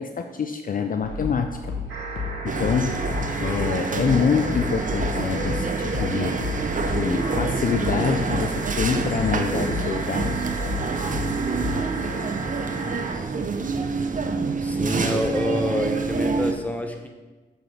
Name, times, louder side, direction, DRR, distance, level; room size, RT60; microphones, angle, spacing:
voice 1, 0.0-1.7 2.4-3.1 3.4-6.3 6.8-10.5, left 6 dB, 50° left, 6 dB, 0.4 m, -26 dB
sound 1, 1.0-12.0, left 3 dB, 90° left, 1.1 m, -32 dB
sound 2, 1.9-13.1 14.6-14.7, right 3 dB, 90° right, 1.7 m, -35 dB
sound 3, 2.5-16.5, right 4 dB, 45° right, 0.6 m, -27 dB
voice 2, 14.5-17.1, left 1 dB, 10° left, 3 dB, 0.9 m, -27 dB
6.7 x 6.1 x 3.3 m, 1.2 s
cardioid pair, 65°, 19 cm